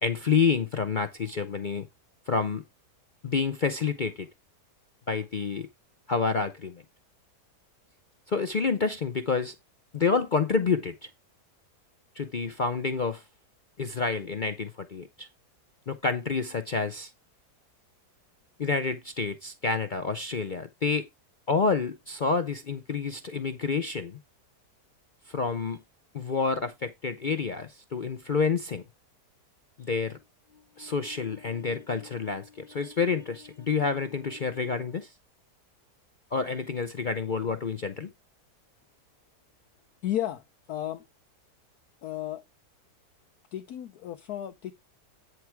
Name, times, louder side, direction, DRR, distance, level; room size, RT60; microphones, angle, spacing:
voice 1, 0.0-1.9 2.3-2.6 3.2-4.3 5.1-5.7 6.1-6.8 8.3-9.5 9.9-10.9 12.2-13.2 13.8-15.3 15.9-17.1 18.6-21.1 21.5-24.2 25.3-25.8 26.1-28.8 29.8-30.2 30.8-35.1 36.3-38.1, left 5 dB, 55° left, 0.5 m, -28 dB
voice 2, 40.0-40.4 40.7-41.0 42.0-42.4 43.5-44.7, left 12 dB, 70° left, 1.2 m, -33 dB
9.5 x 4.6 x 4.5 m
omnidirectional pair, 1.8 m